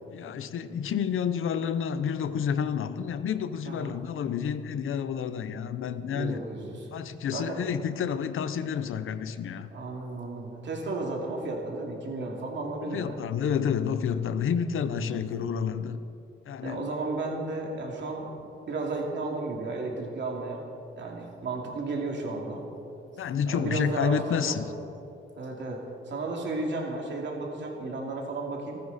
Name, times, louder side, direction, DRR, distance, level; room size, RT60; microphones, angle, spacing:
voice 1, 0.1-6.4 6.9-9.7 12.8-16.0 16.5-16.9 23.2-24.7, left 7 dB, 80° left, 13 dB, 0.7 m, -29 dB
voice 2, 6.1-6.9 7.3-7.7 9.7-13.2 14.9-15.3 16.6-20.6 21.0-22.6 23.5-24.6 25.4-28.8, right 3 dB, 60° right, 0 dB, 2.6 m, -33 dB
28.5 x 9.7 x 4.2 m, 2.8 s
wide cardioid pair, 175°, 21 cm